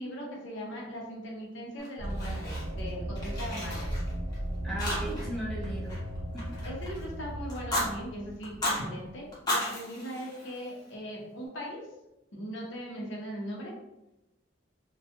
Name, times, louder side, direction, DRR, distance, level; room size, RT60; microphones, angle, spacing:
voice 1, 0.0-3.9 6.6-11.8 12.3-13.7, equal, 70° left, -2 dB, 0.7 m, -39 dB
Fire, 1.8-2.9 3.2-4.4 4.8-5.4 5.6-7.0 7.5-7.9 8.4-8.8 9.3-10.9, left 1 dB, 20° left, 0.8 m, -34 dB
sound 1, 2.0-9.2, right 1 dB, 70° right, 0.7 m, -36 dB
voice 2, 4.6-6.1 6.3-6.6, right 1 dB, ahead, -5 dB, 0.4 m, -37 dB
2.3 x 2.2 x 2.8 m, 0.91 s
head